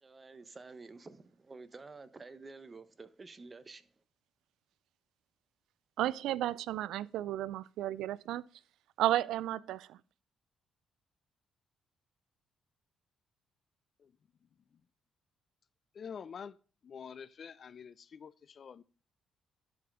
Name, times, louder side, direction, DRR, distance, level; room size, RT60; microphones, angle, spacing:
voice 1, 0.0-3.9, right 3 dB, 30° right, 0.9 m, -50 dB
voice 2, 6.0-8.4 9.0-10.0, right 13 dB, 85° right, 0.3 m, -33 dB
voice 3, 15.9-16.6 16.8-18.8, left 7 dB, 50° left, 0.4 m, -47 dB
11.0 x 5.1 x 3.6 m
cardioid pair, 90°, 0 cm